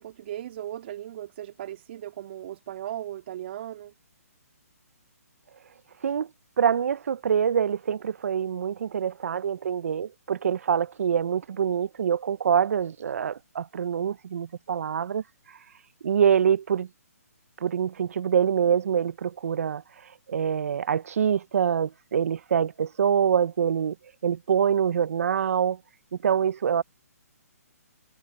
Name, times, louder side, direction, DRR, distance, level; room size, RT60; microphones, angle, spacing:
voice 1, 0.0-3.9, right 12 dB, 45° right, 2.0 m, -37 dB
voice 2, 6.6-15.2 16.0-16.9 17.6-19.8 20.3-23.9 24.2-25.8 26.2-26.8, right 8 dB, 60° right, 0.7 m, -25 dB
hypercardioid pair, 150°, 9 cm